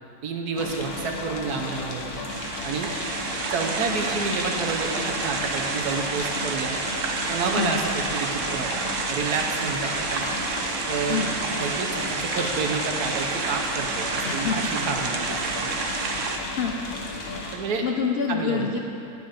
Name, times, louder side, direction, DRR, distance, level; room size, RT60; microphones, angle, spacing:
voice 1, 0.2-2.2 2.6-2.9 3.5-6.8 7.3-10.3 10.9-11.3 11.6-15.8 17.5-17.9 18.3-18.6, right 4 dB, 90° right, 3 dB, 1.4 m, -29 dB
sound 1, 0.6-17.5, left 2 dB, 75° left, 1.6 m, -34 dB
sound 2, 2.3-16.4, right 4 dB, 60° right, 1.0 m, -29 dB
voice 2, 14.2-14.6 16.5-16.8 17.8-18.8, left 6 dB, 60° left, 1 dB, 0.6 m, -26 dB
9.6 x 7.9 x 5.1 m, 2.7 s
omnidirectional pair, 1.6 m